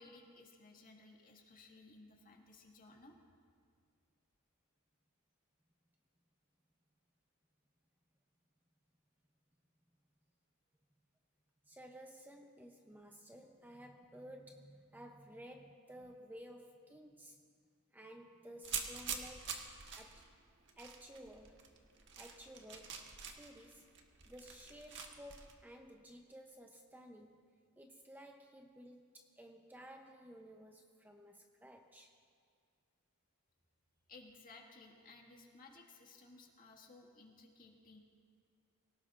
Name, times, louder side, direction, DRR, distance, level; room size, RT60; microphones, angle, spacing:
voice 1, 0.0-3.2 34.1-38.0, left 3 dB, 40° left, 0 dB, 1.9 m, -58 dB
voice 2, 11.7-17.4 17.9-19.6 20.0-20.3 20.8-21.7 22.2-23.0 23.3-23.9 24.3-27.4 27.8-32.1, equal, 10° right, 3 dB, 0.7 m, -55 dB
sound 1, 18.6-25.5, right 6 dB, 55° right, 1.4 m, -46 dB
23.5 x 18.0 x 2.5 m, 2.1 s
head